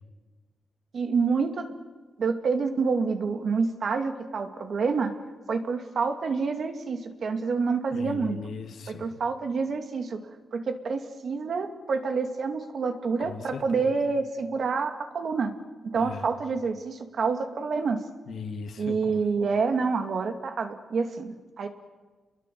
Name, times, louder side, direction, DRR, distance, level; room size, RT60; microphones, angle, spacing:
voice 1, 0.9-1.7 2.2-5.1 5.5-8.4 8.9-15.5 15.8-18.0 18.8-21.7, right 4 dB, 55° right, 6 dB, 2.5 m, -28 dB
voice 2, 7.9-9.2 13.2-14.0 16.0-16.3 18.3-19.2, left 5 dB, 65° left, 5 dB, 2.6 m, -38 dB
29.5 x 22.0 x 7.8 m, 1.3 s
wide cardioid pair, 125°, 0 cm